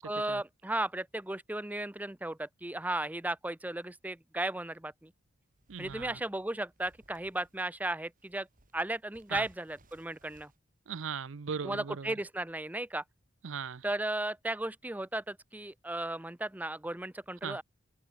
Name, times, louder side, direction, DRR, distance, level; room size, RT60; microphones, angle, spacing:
voice 1, 0.0-5.1 5.8-8.5 8.7-10.5 11.6-13.0 13.8-17.6, right 1 dB, 10° right, 0.6 m, -35 dB
sound 1, 5.3-7.7 8.1-10.6, right 1 dB, 45° right, 3.1 m, -62 dB
voice 2, 5.7-6.2 9.3-9.5 10.9-12.1 13.4-13.8 17.4-17.6, right 6 dB, 75° right, 0.6 m, -38 dB
head